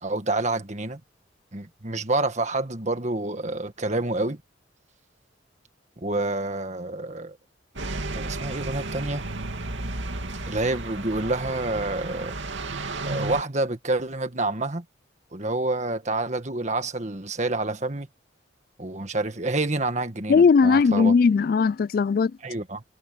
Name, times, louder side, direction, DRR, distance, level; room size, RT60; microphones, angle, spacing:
voice 1, 0.0-1.0 1.5-4.4 6.0-7.4 8.1-9.2 10.5-12.4 13.0-14.8 15.3-18.1 18.8-21.2 22.4-22.8, right 2 dB, 40° right, 1.7 m, -28 dB
sound 1, 7.8-13.4, right 2 dB, 80° right, 2.6 m, -33 dB
voice 2, 20.3-22.3, left 5 dB, 50° left, 0.3 m, -18 dB
head